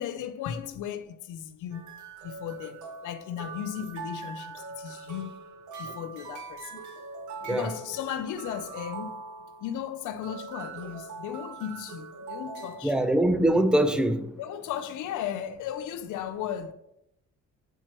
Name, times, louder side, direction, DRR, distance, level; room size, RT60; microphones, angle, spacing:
voice 1, 0.0-1.9 2.2-5.4 5.8-6.8 7.5-9.2 9.6-13.1 14.4-16.7, left 9 dB, 80° left, 0.6 m, -36 dB
sound 1, 1.7-12.9, right 4 dB, 70° right, 1.0 m, -42 dB
voice 2, 12.8-14.3, right 1 dB, 5° right, 0.6 m, -23 dB
9.0 x 4.4 x 2.9 m
cardioid pair, 90°, 30 cm